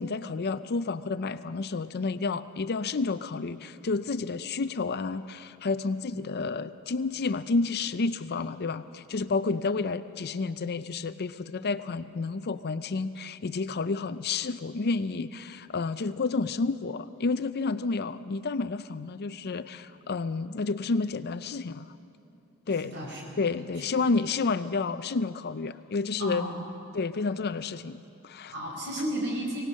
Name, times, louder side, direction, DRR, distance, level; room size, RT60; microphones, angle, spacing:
voice 1, 0.0-21.9 22.7-22.9 23.4-26.4 26.9-28.5, left 4 dB, 45° left, 13 dB, 0.5 m, -30 dB
voice 2, 22.8-23.3 23.7-23.9 26.2-26.6 28.5-29.6, right 1 dB, 55° right, -1 dB, 5.1 m, -33 dB
24.0 x 18.5 x 6.5 m, 2.9 s
head